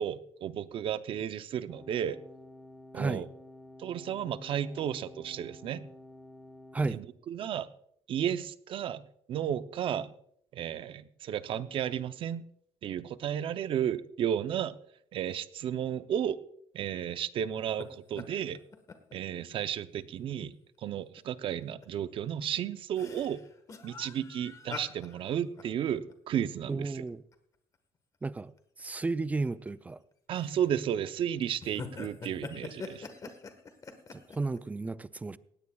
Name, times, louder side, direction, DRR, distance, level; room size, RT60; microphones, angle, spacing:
voice 1, 0.0-2.2 2.9-3.3 3.8-5.9 6.9-7.7 8.1-9.0 9.3-10.1 10.5-12.4 12.8-14.8 15.1-16.4 16.7-18.6 19.1-23.4 23.8-27.0 30.3-33.1, right 9 dB, 55° right, 0.6 m, -33 dB
sound 1, 1.7-6.8, left 1 dB, 5° left, 1.3 m, -51 dB
sound 2, 17.6-17.9 18.2-19.1 19.5-19.6 20.1-20.3 21.2-21.3 21.6-21.9 22.3-27.3 27.7-27.8 28.6-28.8 29.5-29.9 30.3-30.9 31.4-34.6, left 4 dB, 30° left, 1.4 m, -45 dB
voice 2, 26.7-27.2 28.2-28.5 28.8-30.0 34.1-35.4, right 3 dB, 15° right, 0.4 m, -33 dB
19.0 x 16.5 x 2.3 m
cardioid pair, 130°, 11 cm